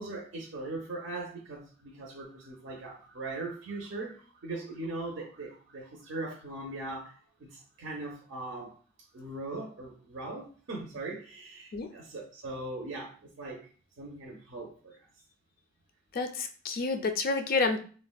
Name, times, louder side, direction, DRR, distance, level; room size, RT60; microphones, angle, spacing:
voice 1, 0.0-8.8 9.1-13.6 14.0-15.1, right 2 dB, 75° right, -1 dB, 0.6 m, -40 dB
voice 2, 16.1-17.8, left 4 dB, 45° left, 7 dB, 0.3 m, -29 dB
3.4 x 2.1 x 2.2 m, 0.40 s
head